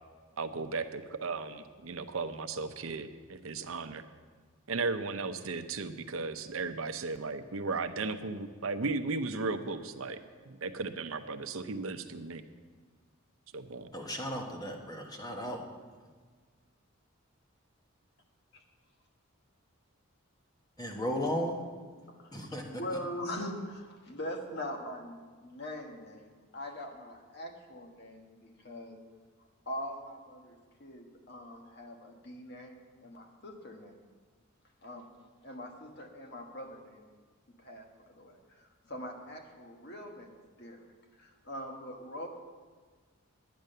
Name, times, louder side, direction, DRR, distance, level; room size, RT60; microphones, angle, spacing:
voice 1, 0.4-4.0 4.7-10.2 10.4-12.4 13.5-13.9, right 3 dB, 70° right, 9 dB, 0.7 m, -35 dB
voice 2, 13.9-15.6 20.8-21.6 22.3-22.6, equal, 20° left, 1 dB, 1.4 m, -35 dB
voice 3, 22.1-29.0 29.6-34.0 34.8-35.1 35.4-37.2 37.6-40.8 41.2-42.3, left 1 dB, 50° left, 3 dB, 1.5 m, -42 dB
10.5 x 9.4 x 6.6 m, 1.5 s
head